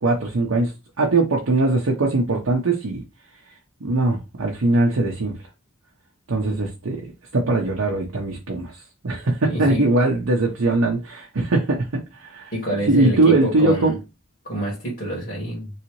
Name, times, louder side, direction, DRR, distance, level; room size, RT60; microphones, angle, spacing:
voice 1, 0.0-0.7 1.0-3.0 3.8-5.4 6.3-7.0 7.3-8.7 9.0-12.5 12.9-14.0, right 2 dB, 85° right, 0.7 m, -21 dB
voice 2, 9.4-9.9 12.5-14.0 14.4-15.7, right 1 dB, 50° left, 1.6 m, -27 dB
3.2 x 2.8 x 3.0 m
head